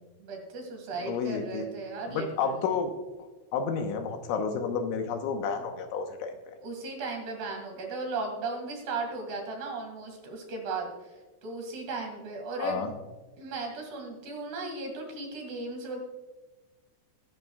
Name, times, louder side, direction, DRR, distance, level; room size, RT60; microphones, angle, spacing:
voice 1, 0.2-2.7 6.6-11.1 11.4-12.9 13.4-16.0, right 3 dB, 60° right, 2 dB, 3.7 m, -36 dB
voice 2, 1.0-1.7 2.1-2.9 3.5-6.3 12.6-12.9, left 6 dB, 75° left, 5 dB, 3.2 m, -30 dB
19.5 x 10.5 x 2.3 m, 1.2 s
omnidirectional pair, 6.0 m